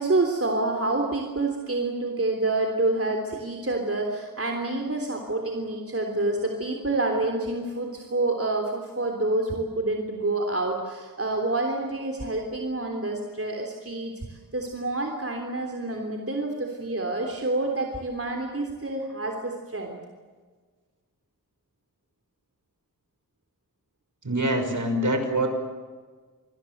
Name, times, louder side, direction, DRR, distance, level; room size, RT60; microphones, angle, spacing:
voice 1, 0.0-20.0, right 2 dB, 40° right, 2 dB, 3.5 m, -28 dB
voice 2, 24.2-25.5, right 1 dB, 60° right, 6 dB, 5.9 m, -24 dB
28.0 x 21.0 x 8.0 m, 1.5 s
wide cardioid pair, 65°, 34 cm